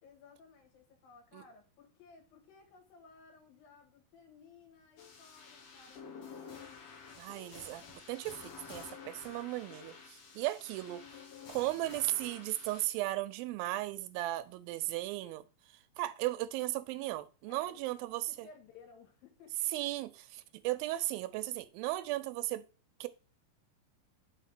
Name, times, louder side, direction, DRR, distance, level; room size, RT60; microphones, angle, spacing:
voice 1, 0.0-6.7 17.5-17.8 18.3-19.7, left 4 dB, 85° left, 3.3 m, -58 dB
sound 1, 5.0-12.8, left 6 dB, 55° left, 2.1 m, -51 dB
voice 2, 7.2-11.0 11.5-18.5 19.7-22.7 23.0-23.1, right 16 dB, 85° right, 2.4 m, -36 dB
6.1 x 3.6 x 5.9 m
omnidirectional pair, 4.1 m